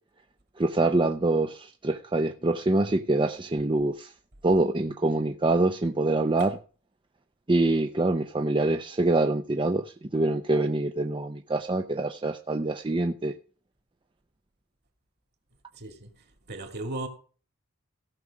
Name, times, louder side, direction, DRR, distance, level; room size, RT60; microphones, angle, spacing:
voice 1, 0.6-4.1 4.4-6.6 7.5-13.3, right 2 dB, 25° right, 0.6 m, -25 dB
voice 2, 15.7-17.1, right 2 dB, 50° right, 2.6 m, -37 dB
16.5 x 6.4 x 4.9 m
head